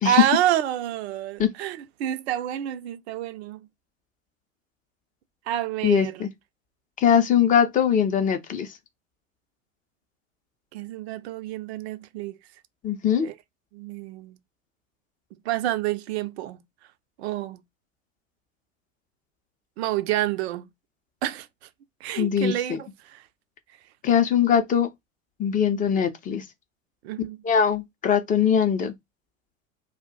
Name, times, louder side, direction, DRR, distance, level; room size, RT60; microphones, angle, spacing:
voice 1, 0.0-3.7 5.5-6.3 10.7-12.4 13.2-13.3 13.7-14.4 15.5-16.6 17.2-17.6 19.8-20.7 21.2-21.5 22.0-23.2 27.0-27.4, right 12 dB, 55° right, 0.5 m, -28 dB
voice 2, 5.8-6.3 7.0-8.7 12.8-13.3 22.2-22.8 24.0-24.9 25.4-26.4 27.4-28.9, left 8 dB, 20° left, 0.5 m, -21 dB
2.3 x 2.1 x 3.7 m
figure-of-eight pair, 85°, 40 cm